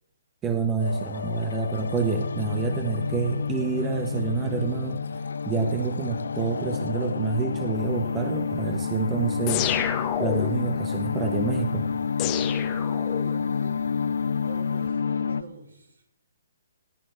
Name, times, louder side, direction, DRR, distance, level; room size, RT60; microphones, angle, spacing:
voice 1, 0.4-5.0 5.4-9.7 10.2-11.9, right 4 dB, 15° right, 5 dB, 1.5 m, -27 dB
sound 1, 0.8-15.4, left 6 dB, 65° left, 0.5 m, -29 dB
sound 2, 9.5-10.7 12.2-13.5, left 11 dB, 25° left, 1.5 m, -29 dB
voice 2, 13.2-13.8 14.4-16.0, right 2 dB, 70° right, 0 dB, 4.9 m, -45 dB
20.5 x 16.0 x 3.4 m, 0.80 s
figure-of-eight pair, 130°, 0 cm